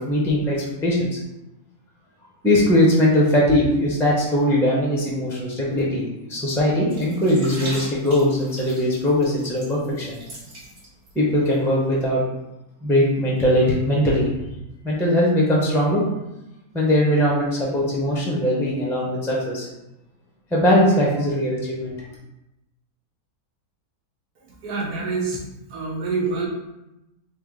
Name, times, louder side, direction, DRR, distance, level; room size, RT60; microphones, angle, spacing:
voice 1, 0.1-0.6 0.8-1.1 2.4-6.0 6.3-10.2 11.1-12.2 12.8-14.3 14.8-16.0 16.7-19.7 20.5-21.9, left 1 dB, 5° left, -4 dB, 0.3 m, -20 dB
sound 1, 6.9-11.1 11.4-11.6, right 1 dB, 50° right, 1.2 m, -39 dB
voice 2, 24.4-25.4 25.7-26.5, right 4 dB, 85° right, -1 dB, 1.4 m, -27 dB
3.5 x 2.9 x 3.7 m, 0.93 s
omnidirectional pair, 1.6 m